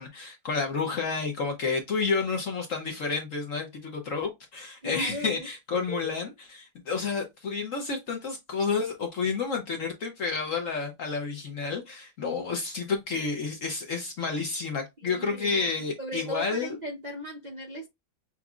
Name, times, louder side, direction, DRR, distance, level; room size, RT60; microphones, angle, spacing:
voice 1, 0.0-16.8, left 4 dB, 55° left, 0.9 m, -30 dB
voice 2, 4.8-5.5 5.7-6.1 15.0-17.9, equal, 70° right, 0.4 m, -38 dB
5.9 x 2.7 x 2.4 m
omnidirectional pair, 2.2 m